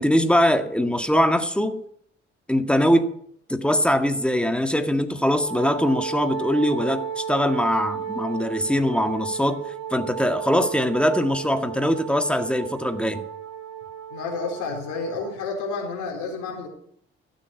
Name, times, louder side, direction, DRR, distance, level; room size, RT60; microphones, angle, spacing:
voice 1, 0.0-1.8 2.5-3.1 3.5-9.6 9.9-13.3, equal, 5° left, 7 dB, 1.8 m, -22 dB
Wind instrument woodwind instrument, 5.4-15.4, right 8 dB, 60° right, 1.1 m, -34 dB
voice 2, 14.1-16.7, left 4 dB, 70° left, 0 dB, 4.1 m, -30 dB
14.0 x 7.1 x 8.2 m, 0.68 s
hypercardioid pair, 45°, 31 cm